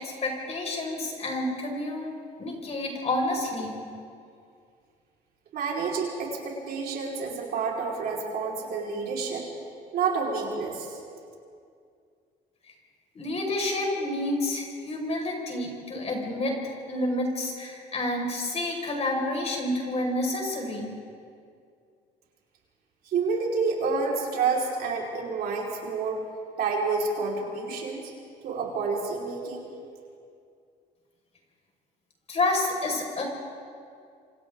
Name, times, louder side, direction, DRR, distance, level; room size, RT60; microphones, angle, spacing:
voice 1, 0.0-2.1 2.4-3.8 13.1-16.6 16.9-20.9 32.3-33.2, left 2 dB, 40° left, 0 dB, 5.9 m, -29 dB
voice 2, 5.5-9.4 9.9-11.0 23.1-26.2 26.6-28.1 28.4-29.7, right 4 dB, 65° right, -3 dB, 5.1 m, -29 dB
28.0 x 26.5 x 4.0 m, 2.3 s
cardioid pair, 110°, 17 cm